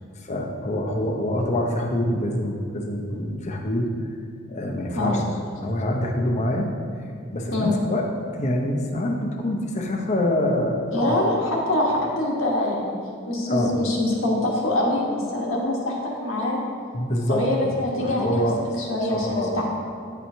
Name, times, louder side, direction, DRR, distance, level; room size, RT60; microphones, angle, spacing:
voice 1, 0.2-3.9 4.5-5.2 5.5-6.7 7.3-8.1 8.3-10.8 11.1-11.2 13.5-13.8 16.9-17.5 18.0-18.6 19.0-19.6, left 1 dB, 35° left, 1 dB, 0.7 m, -25 dB
voice 2, 10.9-12.9 13.3-16.6 17.3-18.4 18.8-19.6, left 1 dB, 80° left, -2 dB, 1.2 m, -24 dB
9.1 x 4.4 x 2.7 m, 2.3 s
head